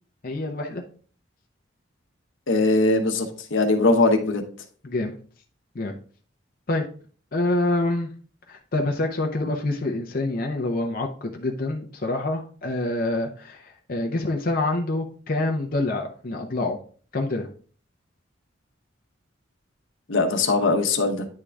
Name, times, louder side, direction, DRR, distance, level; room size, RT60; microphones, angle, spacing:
voice 1, 0.2-0.8 4.8-5.2 5.7-5.9 6.7-6.8 7.3-8.1 8.5-16.8 17.1-17.5, left 2 dB, 45° left, 2 dB, 0.7 m, -26 dB
voice 2, 2.5-4.4 20.1-21.3, left 3 dB, 80° left, 4 dB, 1.0 m, -21 dB
9.7 x 3.7 x 3.3 m, 0.43 s
head